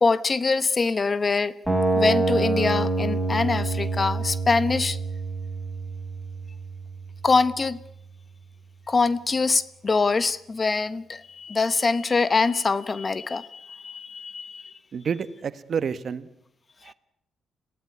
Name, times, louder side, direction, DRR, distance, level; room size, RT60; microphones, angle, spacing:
voice 1, 0.0-1.5 1.9-5.0 7.2-7.8 8.9-14.7, left 4 dB, 35° left, 1.1 m, -24 dB
sound 1, 1.7-7.7, right 2 dB, 5° right, 5.2 m, -27 dB
voice 2, 14.9-16.3 16.8-16.9, right 6 dB, 50° right, 1.3 m, -29 dB
23.0 x 17.0 x 9.7 m
cardioid pair, 90°, 0 cm